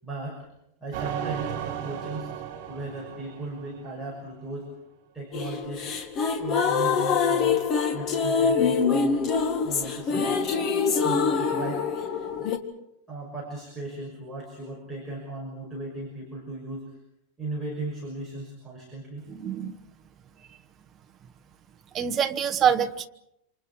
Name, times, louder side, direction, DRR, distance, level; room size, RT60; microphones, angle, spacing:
voice 1, 0.0-0.5 0.8-2.4 2.7-4.7 5.1-5.9 6.4-7.7 7.9-9.2 9.6-10.4 11.0-11.9 12.4-12.5 13.1-17.0 17.4-19.3, right 2 dB, ahead, -6 dB, 5.9 m, -36 dB
sound 1, 0.9-4.3, right 9 dB, 40° right, 4.3 m, -35 dB
sound 2, 5.3-12.6, left 5 dB, 30° left, 1.8 m, -25 dB
voice 2, 19.3-19.8 21.9-23.1, right 8 dB, 20° right, 6 dB, 1.1 m, -25 dB
28.5 x 27.0 x 4.8 m, 0.81 s
supercardioid pair, 175°, 0 cm